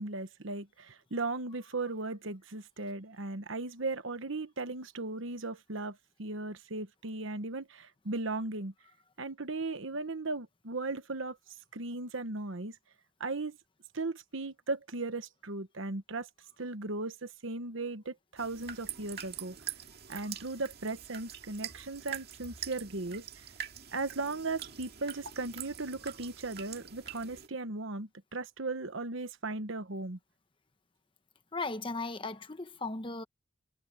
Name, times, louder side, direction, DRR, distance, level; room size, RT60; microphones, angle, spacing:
voice 1, 0.0-8.7 9.2-11.4 11.7-12.8 13.2-13.6 13.9-16.3 16.6-19.6 20.1-23.3 23.9-30.2, right 3 dB, 70° right, 1.2 m, -37 dB
sound 1, 18.4-27.5, right 9 dB, 50° right, 2.1 m, -44 dB
voice 2, 31.5-33.2, left 3 dB, 25° left, 1.1 m, -37 dB
head